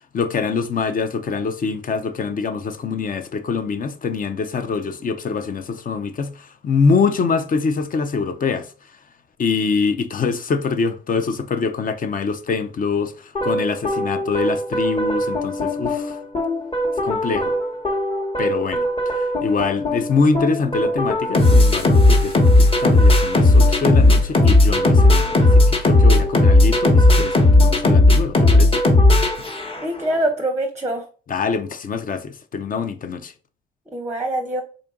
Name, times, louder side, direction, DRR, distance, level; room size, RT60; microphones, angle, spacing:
voice 1, 0.1-9.0 9.4-16.2 17.0-17.5 18.4-28.8 31.3-33.3, left 5 dB, 45° left, 0.6 m, -24 dB
sound 1, 13.3-30.0, left 2 dB, 30° left, 1.1 m, -16 dB
voice 2, 29.8-31.0 33.9-34.6, right 1 dB, 15° right, 0.6 m, -24 dB
3.7 x 2.5 x 3.5 m
cardioid pair, 90°, 20 cm